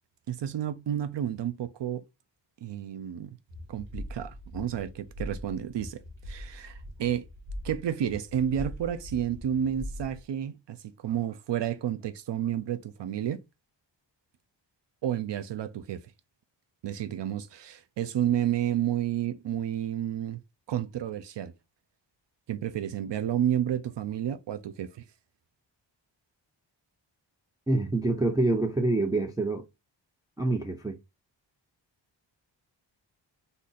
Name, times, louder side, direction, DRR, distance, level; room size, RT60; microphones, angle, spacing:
voice 1, 0.3-2.0 2.6-3.4 3.7-6.0 6.3-7.2 7.6-13.4 15.0-16.0 16.8-20.4 20.7-21.5 22.5-24.9, right 10 dB, 65° right, 0.5 m, -31 dB
sound 1, 3.5-10.2, left 1 dB, 85° right, 1.2 m, -42 dB
voice 2, 27.7-29.7 30.4-31.0, right 2 dB, 10° right, 0.3 m, -26 dB
2.7 x 2.5 x 3.9 m
wide cardioid pair, 100°, 46 cm